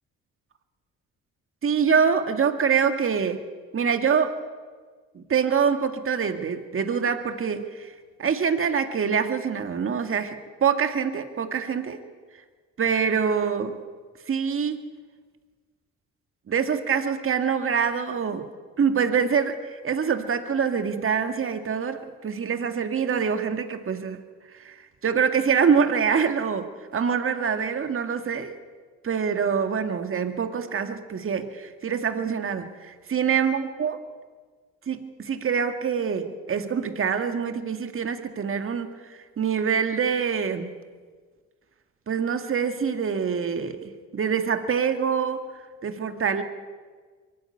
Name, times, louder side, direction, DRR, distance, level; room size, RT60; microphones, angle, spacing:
voice 1, 1.6-3.4 3.7-4.4 5.1-7.9 8.2-12.0 12.8-13.8 14.3-14.8 16.5-18.5 18.8-24.2 24.5-28.6 29.0-34.0 34.9-40.7 42.1-45.5 45.8-46.4, right 6 dB, 45° right, 8 dB, 1.9 m, -25 dB
22.5 x 14.5 x 9.8 m, 1.5 s
cardioid pair, 90°, 30 cm